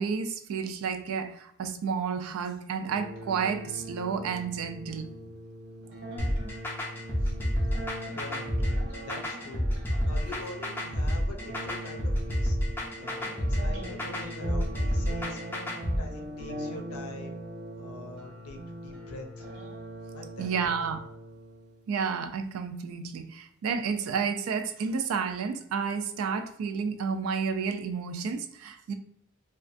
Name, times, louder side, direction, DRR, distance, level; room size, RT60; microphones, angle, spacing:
voice 1, 0.0-5.1 10.3-10.4 20.4-21.1 21.9-28.9, right 6 dB, 80° right, 0.3 m, -31 dB
sound 1, 2.8-21.8, right 1 dB, 60° right, 0.7 m, -41 dB
sound 2, 6.2-16.0, equal, 10° left, 0.4 m, -29 dB
voice 2, 8.1-8.5 9.0-9.7 10.1-15.4 16.0-17.4 17.8-19.5 20.1-20.5, left 3 dB, 90° left, 0.5 m, -44 dB
2.4 x 2.3 x 2.4 m
head